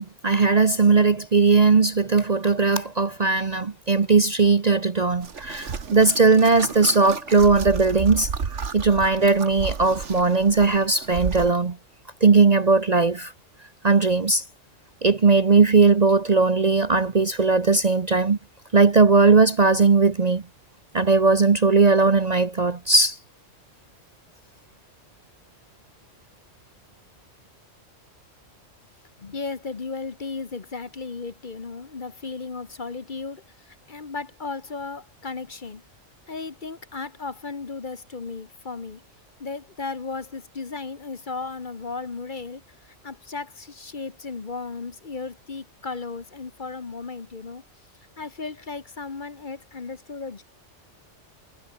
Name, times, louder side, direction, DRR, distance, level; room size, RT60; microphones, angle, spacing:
voice 1, 0.0-8.3 8.7-11.8 12.2-13.3 13.8-14.4 15.0-18.4 18.7-20.4 20.9-23.2, right 4 dB, 35° right, 0.9 m, -18 dB
sound 1, 5.2-11.5, right 6 dB, 65° right, 1.9 m, -33 dB
voice 2, 29.2-35.8 36.3-39.0 39.4-47.6 48.2-50.4, left 4 dB, 40° left, 1.3 m, -35 dB
omnidirectional pair, 1.3 m